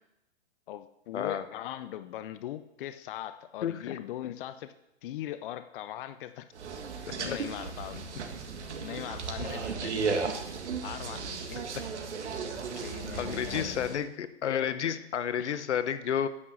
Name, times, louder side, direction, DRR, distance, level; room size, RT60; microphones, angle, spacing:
voice 1, 0.7-6.5 7.2-8.2 8.8-10.2 10.8-11.6 12.8-14.0 15.4-15.6, left 12 dB, 50° left, 12 dB, 0.6 m, -40 dB
voice 2, 3.6-4.0 7.1-7.4 13.2-16.3, left 8 dB, 80° left, 13 dB, 1.0 m, -31 dB
sound 1, 6.5-14.0, right 5 dB, 80° right, 1.9 m, -35 dB
9.8 x 8.6 x 6.4 m, 0.87 s
hypercardioid pair, 135°, 34 cm